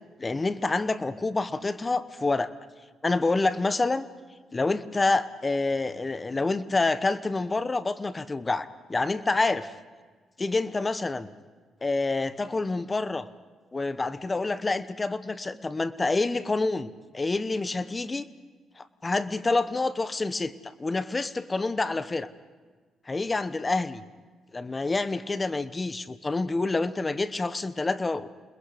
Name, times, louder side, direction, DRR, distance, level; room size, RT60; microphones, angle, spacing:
voice 1, 0.2-2.5 3.0-4.1 4.5-9.7 10.4-11.3 11.8-13.3 13.7-18.3 18.8-22.3 23.1-24.0 24.5-28.3, left 3 dB, 25° left, 13 dB, 1.0 m, -27 dB
28.5 x 21.0 x 5.1 m, 1.4 s
cardioid pair, 90°, 0 cm